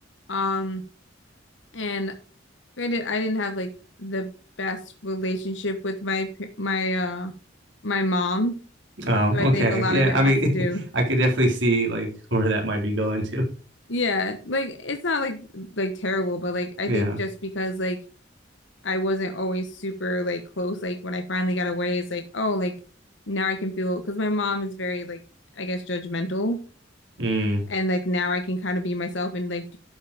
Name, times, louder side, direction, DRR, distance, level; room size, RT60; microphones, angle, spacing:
voice 1, 0.3-0.8 1.7-2.1 2.8-3.7 4.0-4.3 4.6-7.3 7.8-8.6 9.3-10.8 13.9-18.0 18.8-22.7 23.3-25.2 25.6-26.6 27.7-29.8, left 1 dB, 75° left, 6 dB, 1.2 m, -27 dB
voice 2, 9.0-10.5 10.7-13.4 16.9-17.2 27.2-27.6, right 1 dB, 75° right, 1 dB, 3.8 m, -22 dB
12.0 x 5.7 x 5.0 m, 0.36 s
head